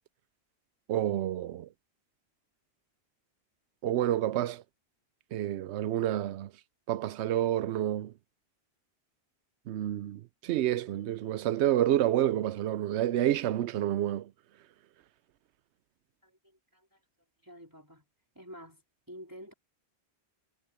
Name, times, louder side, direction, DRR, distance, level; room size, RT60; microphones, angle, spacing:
voice 1, 0.9-1.7 3.8-4.6 5.3-6.5 6.9-8.1 9.7-14.3, right 12 dB, 85° right, 0.9 m, -29 dB
voice 2, 16.2-17.0 17.4-18.0 18.4-19.5, equal, 20° right, 3.8 m, -49 dB
omnidirectional pair, 1.1 m